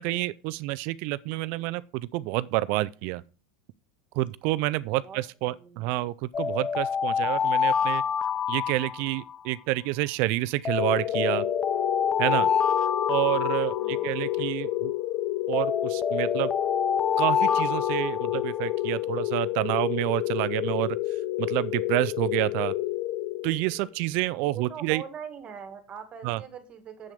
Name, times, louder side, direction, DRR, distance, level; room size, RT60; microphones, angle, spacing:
voice 1, 0.0-3.2 4.1-8.0 8.5-11.4 12.2-12.5 13.1-14.9 15.5-16.5 17.2-21.0 21.4-22.7 23.4-25.0 26.2-26.4, right 18 dB, 55° right, 0.4 m, -28 dB
voice 2, 5.5-6.0 13.8-14.2 24.5-27.1, right 7 dB, 30° right, 1.8 m, -42 dB
sound 1, 6.3-9.5 10.6-14.4 15.5-18.7, left 6 dB, 20° left, 0.4 m, -27 dB
sound 2, 10.8-23.9, left 16 dB, 50° left, 0.9 m, -30 dB
7.7 x 7.4 x 5.0 m
supercardioid pair, 140°, 4 cm